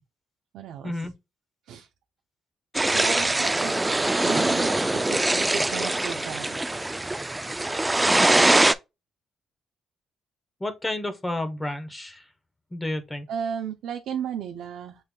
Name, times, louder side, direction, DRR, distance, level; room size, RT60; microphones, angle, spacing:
voice 1, 0.5-1.1 1.7-1.9 2.9-6.8 13.3-15.0, right 8 dB, 80° right, 0.5 m, -35 dB
sound 1, 2.7-8.7, right 2 dB, 15° right, 0.3 m, -23 dB
voice 2, 10.6-12.2 12.7-13.3, left 1 dB, 15° left, 1.0 m, -31 dB
6.9 x 3.2 x 2.2 m
cardioid pair, 90°, 0 cm